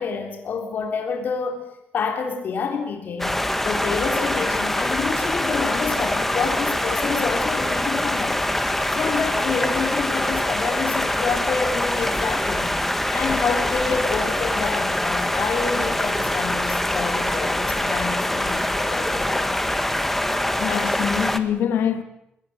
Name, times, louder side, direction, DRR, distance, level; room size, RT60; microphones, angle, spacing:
voice 1, 0.0-1.6 1.9-3.4 3.6-12.8 13.1-19.6, left 5 dB, 60° left, 3.6 m, -28 dB
sound 1, 3.2-21.4, left 1 dB, 5° left, 1.7 m, -24 dB
voice 2, 20.6-22.0, left 8 dB, 85° left, 2.3 m, -24 dB
21.5 x 18.5 x 9.3 m
cardioid pair, 120°, 4 cm